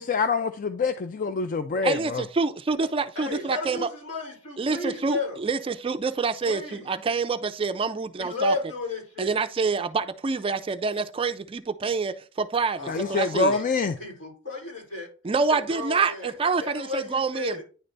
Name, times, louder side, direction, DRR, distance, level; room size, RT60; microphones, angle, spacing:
voice 1, 0.0-2.2 12.9-13.9, left 4 dB, 40° left, 0.4 m, -25 dB
voice 2, 1.8-3.9 4.6-8.5 9.2-13.6 15.2-17.6, right 4 dB, 30° right, 0.4 m, -27 dB
voice 3, 3.2-5.4 6.5-6.9 8.2-9.4 12.8-13.6 14.0-15.1 15.3-17.6, left 3 dB, 80° left, 4.2 m, -33 dB
9.7 x 3.3 x 3.9 m
head